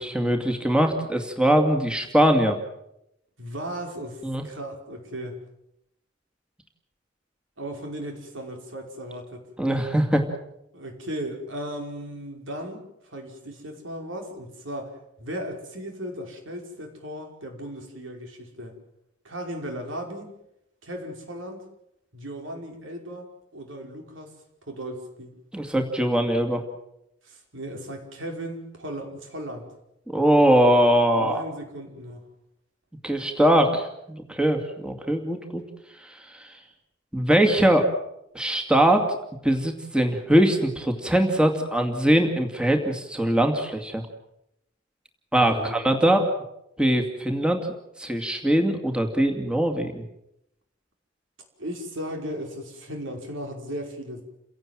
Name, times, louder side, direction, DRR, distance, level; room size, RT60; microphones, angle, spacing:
voice 1, 0.0-2.6 4.2-4.4 9.6-10.3 25.5-26.6 30.1-31.4 33.0-35.6 36.0-36.5 37.1-37.9 38.3-39.0 39.4-44.0 45.3-46.3 46.8-47.7 48.0-50.0, right 1 dB, 5° right, 3 dB, 2.4 m, -22 dB
voice 2, 3.4-5.4 7.6-9.5 10.7-18.7 19.2-20.3 20.8-21.6 22.1-24.3 24.7-25.4 27.2-29.7 31.1-32.2 45.5-45.8 51.6-54.2, equal, 80° right, 3 dB, 5.4 m, -36 dB
29.5 x 17.0 x 7.7 m, 0.83 s
head